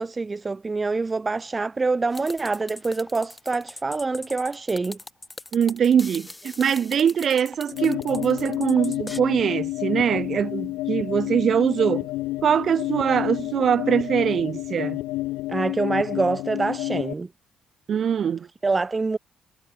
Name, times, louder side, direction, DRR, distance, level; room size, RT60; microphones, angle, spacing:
voice 1, 0.0-5.0 15.5-17.3 18.6-19.2, right 3 dB, 25° right, 0.5 m, -25 dB
sound 1, 2.1-9.2, left 2 dB, 15° left, 3.9 m, -40 dB
voice 2, 5.5-12.1 12.4-15.0 17.9-18.5, right 8 dB, 55° right, 1.6 m, -22 dB
sound 2, 7.7-17.1, left 18 dB, 90° left, 1.1 m, -29 dB
supercardioid pair, 75°, 0 cm